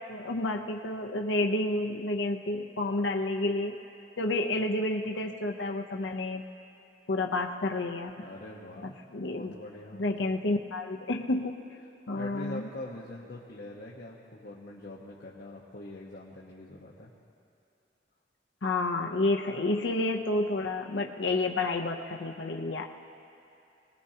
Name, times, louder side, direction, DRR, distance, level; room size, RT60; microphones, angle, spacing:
voice 1, 0.1-3.8 4.2-6.4 7.1-8.1 8.8-9.5 9.9-11.5 12.1-12.6 18.6-22.8, left 2 dB, 90° left, 2 dB, 0.7 m, -30 dB
voice 2, 8.2-10.3 12.1-17.1, left 1 dB, 55° left, -4 dB, 1.2 m, -44 dB
24.0 x 19.0 x 2.9 m, 2.7 s
head